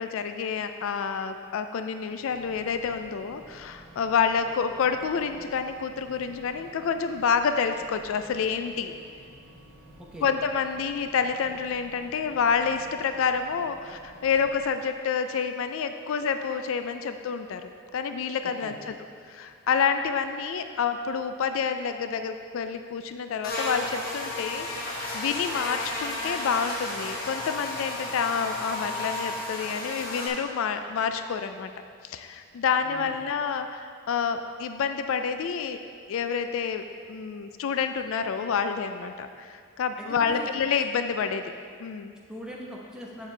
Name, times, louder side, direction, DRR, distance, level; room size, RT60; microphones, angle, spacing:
voice 1, 0.0-8.9 10.2-18.9 19.3-31.7 32.0-35.8 36.1-41.5 41.8-42.1, left 6 dB, 65° left, 8 dB, 0.3 m, -28 dB
sound 1, 2.2-14.7, right 1 dB, 65° right, 1.6 m, -52 dB
voice 2, 10.0-10.3 18.6-18.7 32.8-33.3 40.0-40.5 42.3-43.3, equal, 5° right, -4 dB, 0.9 m, -41 dB
Buzz, 23.4-30.3, left 2 dB, 45° left, 1.2 m, -33 dB
8.1 x 7.2 x 3.3 m, 2.2 s
head